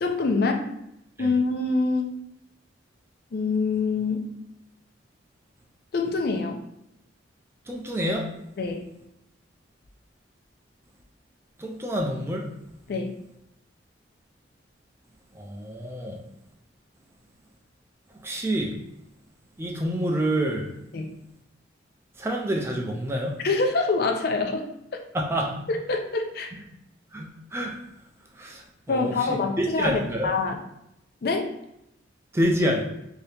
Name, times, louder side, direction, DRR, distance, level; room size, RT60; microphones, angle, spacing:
voice 1, 0.0-0.7 1.2-2.1 3.3-4.2 5.9-6.6 8.6-8.8 12.9-13.1 20.9-21.1 23.4-24.7 25.7-26.5 28.9-30.6 31.2-31.5, left 3 dB, 55° left, 4 dB, 0.4 m, -25 dB
voice 2, 7.7-8.3 11.6-12.5 15.3-16.2 18.2-18.8 19.6-20.7 22.2-23.4 25.1-25.6 27.1-27.8 28.4-30.3 32.3-32.8, equal, 15° right, 0 dB, 0.4 m, -27 dB
2.8 x 2.7 x 3.3 m, 0.82 s
head